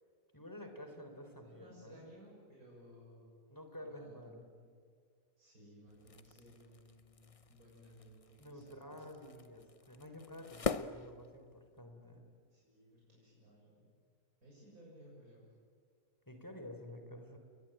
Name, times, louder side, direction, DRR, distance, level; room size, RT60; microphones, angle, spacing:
voice 1, 0.3-2.1 3.5-4.5 8.4-12.3 16.3-17.4, left 1 dB, 15° left, 5 dB, 3.8 m, -50 dB
voice 2, 1.4-3.4 3.8-4.7 5.4-9.0 10.3-10.5 12.5-13.9 14.4-15.5, equal, 85° right, -5 dB, 7.1 m, -59 dB
sound 1, 5.9-11.9, left 5 dB, 35° left, 0.6 m, -44 dB
29.5 x 22.5 x 9.1 m, 2.1 s
omnidirectional pair, 1.5 m